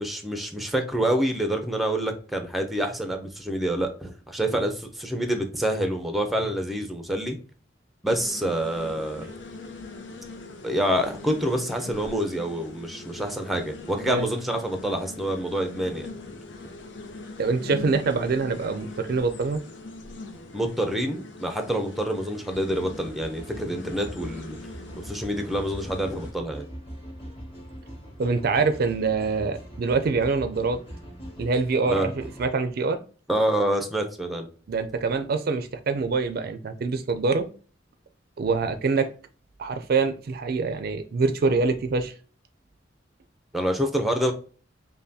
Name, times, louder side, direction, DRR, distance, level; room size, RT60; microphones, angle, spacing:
voice 1, 0.0-7.4 8.0-9.3 10.6-16.1 20.5-24.6 25.0-26.6 31.9-32.1 33.3-34.5 43.5-44.3, right 1 dB, ahead, 0.5 m, -27 dB
sound 1, 8.1-26.3, left 3 dB, 70° left, 0.7 m, -42 dB
voice 2, 17.4-19.6 28.2-30.8 31.4-33.0 34.7-37.5 38.4-39.1 39.6-42.1, right 4 dB, 55° right, 0.4 m, -25 dB
sound 2, 22.5-32.5, equal, 30° left, 1.7 m, -42 dB
5.4 x 2.2 x 2.7 m
head